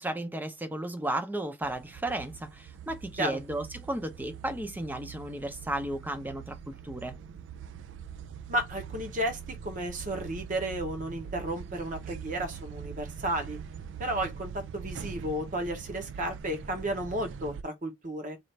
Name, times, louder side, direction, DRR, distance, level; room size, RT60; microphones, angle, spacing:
voice 1, 0.0-7.2, right 1 dB, 10° right, 0.6 m, -34 dB
sound 1, 1.6-17.6, right 7 dB, 75° right, 0.3 m, -43 dB
voice 2, 8.5-13.6 14.0-18.4, right 1 dB, 45° right, 0.9 m, -33 dB
4.1 x 2.4 x 3.2 m
head